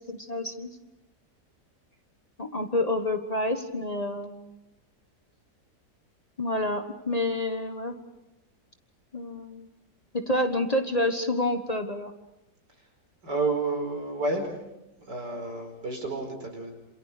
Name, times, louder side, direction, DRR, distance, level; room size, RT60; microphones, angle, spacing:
voice 1, 0.1-0.7 2.4-4.6 6.4-8.0 9.1-9.7 10.1-12.1, left 1 dB, 25° left, 6 dB, 1.3 m, -28 dB
voice 2, 13.2-14.5 15.0-16.7, right 3 dB, 90° right, 3 dB, 5.4 m, -30 dB
27.5 x 27.5 x 5.1 m, 0.95 s
omnidirectional pair, 1.8 m